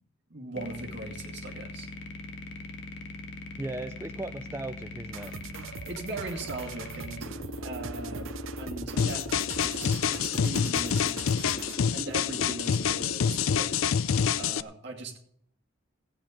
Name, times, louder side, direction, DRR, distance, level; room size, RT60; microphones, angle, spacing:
voice 1, 0.3-1.9 5.7-7.3 7.6-8.3 8.6-11.4 11.9-13.7 14.4-15.2, right 2 dB, 50° right, 0 dB, 2.5 m, -39 dB
sound 1, 0.5-13.9, left 1 dB, 55° left, 1.8 m, -40 dB
voice 2, 3.6-5.3, right 2 dB, 10° right, 8 dB, 0.4 m, -37 dB
sound 2, 5.1-11.9, right 5 dB, 70° right, 0.7 m, -43 dB
sound 3, 9.0-14.6, left 7 dB, 75° left, 0.5 m, -27 dB
15.5 x 8.9 x 5.2 m, 0.71 s
head